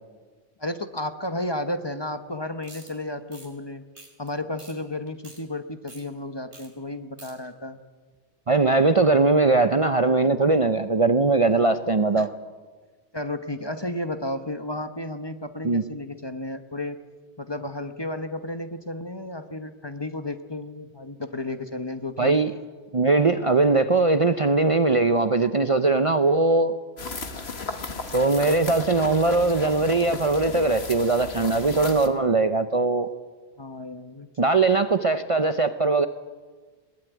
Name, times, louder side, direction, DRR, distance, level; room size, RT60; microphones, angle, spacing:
voice 1, 0.6-3.8 4.2-7.8 10.2-10.3 12.1-12.3 13.1-17.0 17.4-22.4 33.6-34.3, left 1 dB, 25° left, 9 dB, 1.1 m, -33 dB
sound 1, 2.6-2.9 3.3-3.5 4.0-4.3 4.6-4.7 5.1-5.4 5.9-6.0 6.5-6.7 6.9-7.3, right 2 dB, 75° right, 4.7 m, -46 dB
voice 2, 8.5-12.3 15.6-15.8 22.2-22.5 22.9-26.7 28.1-33.1 34.4-36.1, right 3 dB, 35° right, 10 dB, 0.7 m, -20 dB
sound 2, 27.0-32.1, left 3 dB, 65° left, 1.9 m, -35 dB
21.0 x 19.5 x 9.3 m, 1.4 s
omnidirectional pair, 1.2 m